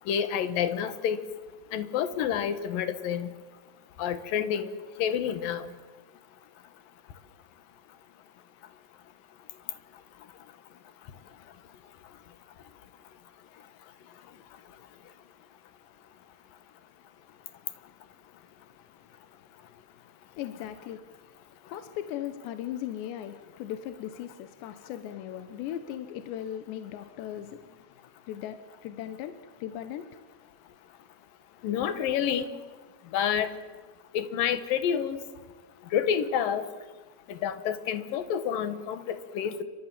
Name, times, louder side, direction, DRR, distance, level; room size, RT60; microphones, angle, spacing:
voice 1, 0.1-1.2 1.7-3.3 4.0-4.7 5.0-5.7 31.6-32.5 33.1-33.5 34.1-35.2 35.9-36.6 37.3-39.6, left 8 dB, 60° left, 12 dB, 2.8 m, -28 dB
voice 2, 20.4-21.0 21.7-27.8 28.3-30.0, left 11 dB, 80° left, 9 dB, 3.3 m, -38 dB
29.0 x 25.0 x 7.5 m, 1.4 s
omnidirectional pair, 5.0 m